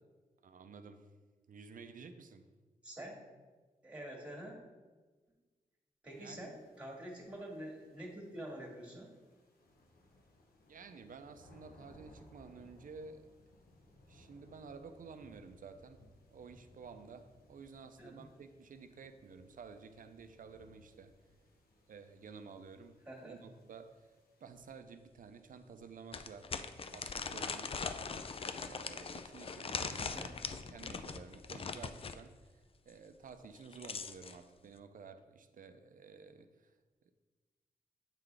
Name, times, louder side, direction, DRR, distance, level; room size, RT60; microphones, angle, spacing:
voice 1, 0.4-1.1 1.5-2.5 6.2-6.5 10.7-13.3 14.1-16.0 16.3-21.1 21.9-24.1 24.4-26.5 26.9-27.8 28.2-30.2 30.5-32.6 32.9-36.7 37.1-37.2, right 5 dB, 65° right, 9 dB, 0.5 m, -52 dB
voice 2, 2.8-3.2 3.8-4.6 6.0-9.1 18.0-18.3 23.1-23.4 30.0-30.3, right 1 dB, 10° right, -1 dB, 1.9 m, -47 dB
sound 1, 6.1-24.5, left 1 dB, 85° left, 0.9 m, -64 dB
sound 2, 24.6-24.7 25.2-25.3 26.1-32.2 33.4-34.4, left 5 dB, 40° left, 0.4 m, -41 dB
8.1 x 3.8 x 3.3 m, 1.4 s
cardioid pair, 60°, 15 cm